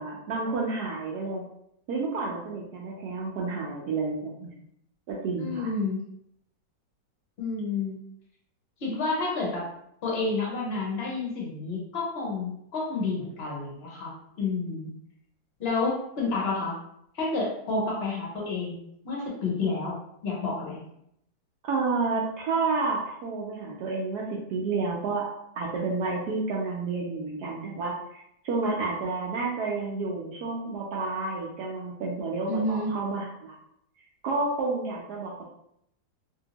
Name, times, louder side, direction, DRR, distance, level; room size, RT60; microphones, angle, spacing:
voice 1, 0.0-1.4 1.9-4.5 5.1-5.7 21.6-24.2 24.5-25.3 25.5-33.5 34.2-35.5, right 3 dB, 75° right, -3 dB, 1.0 m, -30 dB
voice 2, 5.4-6.0 7.4-8.0 8.8-9.7 10.0-14.1 14.4-14.9 15.6-16.8 17.1-20.8 32.5-32.9, left 3 dB, 50° left, -3 dB, 0.8 m, -30 dB
2.8 x 2.7 x 2.8 m, 0.75 s
omnidirectional pair, 2.0 m